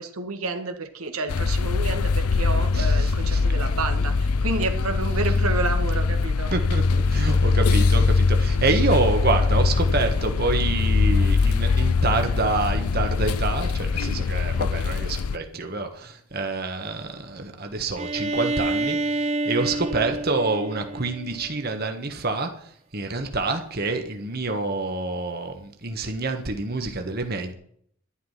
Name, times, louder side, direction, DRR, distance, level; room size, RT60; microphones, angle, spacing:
voice 1, 0.0-6.5, right 3 dB, 80° right, 6 dB, 1.6 m, -30 dB
sound 1, 1.3-15.4, left 4 dB, 85° left, 0.5 m, -22 dB
voice 2, 2.7-3.4 6.5-27.5, right 3 dB, 45° right, 5 dB, 1.4 m, -27 dB
Bowed string instrument, 18.0-21.7, right 2 dB, 30° right, 0.6 m, -28 dB
11.5 x 11.5 x 5.7 m, 0.65 s
head